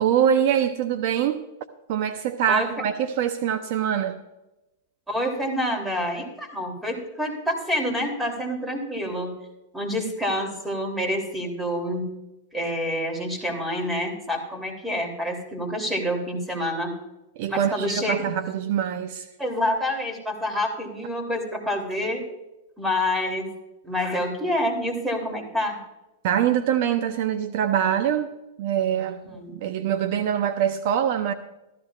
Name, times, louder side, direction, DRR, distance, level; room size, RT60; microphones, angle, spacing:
voice 1, 0.0-1.4 1.9-4.2 17.4-19.3 26.2-29.2 29.5-31.3, right 9 dB, 55° right, 9 dB, 0.7 m, -24 dB
voice 2, 5.1-9.4 9.7-12.1 12.5-17.0 17.5-18.2 19.4-22.2 22.8-23.5 23.8-25.8 29.3-29.5, left 1 dB, 10° right, 3 dB, 3.2 m, -27 dB
15.0 x 14.0 x 2.4 m, 0.97 s
hypercardioid pair, 120°, 0 cm